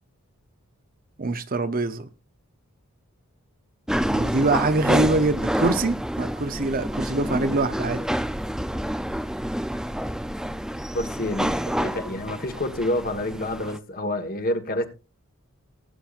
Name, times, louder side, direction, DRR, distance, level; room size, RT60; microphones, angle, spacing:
voice 1, 1.2-2.1 4.1-8.0, right 3 dB, 40° right, 0.8 m, -24 dB
sound 1, 3.9-13.8, equal, 5° right, 0.5 m, -28 dB
voice 2, 10.9-14.9, left 1 dB, 40° left, 1.4 m, -28 dB
19.0 x 8.8 x 2.5 m
head